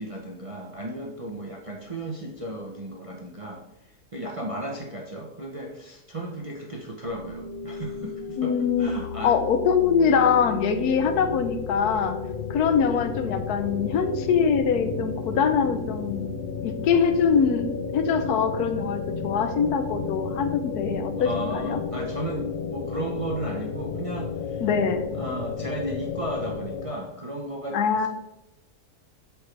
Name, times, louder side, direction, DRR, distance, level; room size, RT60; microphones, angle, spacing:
voice 1, 0.0-3.6 4.1-9.4 21.2-24.6 25.1-28.1, right 1 dB, 35° right, 0 dB, 0.5 m, -34 dB
sound 1, 7.0-26.9, left 5 dB, 55° left, 0.6 m, -33 dB
voice 2, 8.4-8.9 9.2-12.2 12.5-16.3 16.6-17.7 17.9-21.8 24.6-25.0 27.7-28.1, left 6 dB, 85° left, 8 dB, 1.2 m, -23 dB
8.2 x 4.4 x 3.2 m, 0.91 s
omnidirectional pair, 1.6 m